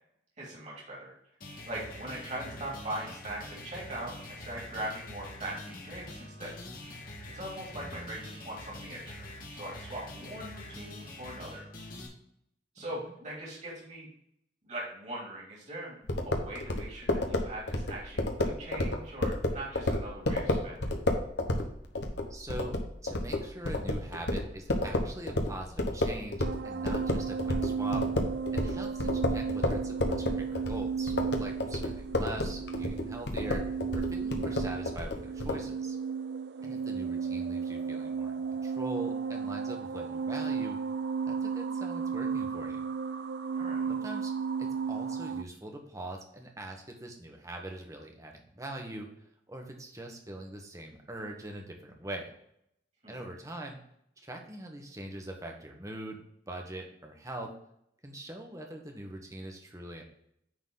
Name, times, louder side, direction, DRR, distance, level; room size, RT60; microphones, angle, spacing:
voice 1, 0.4-1.1 1.7-6.5 6.8-7.1 7.3-9.3 9.5-11.6 12.7-14.1 14.6-20.8 36.6-36.8 43.5-43.9 53.0-53.2, right 1 dB, 40° right, -4 dB, 2.8 m, -41 dB
sound 1, 1.4-12.1, left 1 dB, 50° left, 1.7 m, -45 dB
voice 2, 7.8-8.2 12.8-13.1 22.3-22.8 23.0-28.0 28.5-31.1 31.4-33.6 33.9-36.0 36.6-40.8 41.2-42.9 43.9-44.3 44.6-49.1 49.5-52.3 53.1-53.8 54.2-57.5 58.0-60.0, right 1 dB, 20° right, 2 dB, 1.3 m, -42 dB
sound 2, 16.1-26.6 26.9-35.6, left 1 dB, 70° left, 1.1 m, -31 dB
sound 3, 26.4-45.4, right 6 dB, 65° right, 0.4 m, -34 dB
9.6 x 4.1 x 3.9 m, 0.74 s
head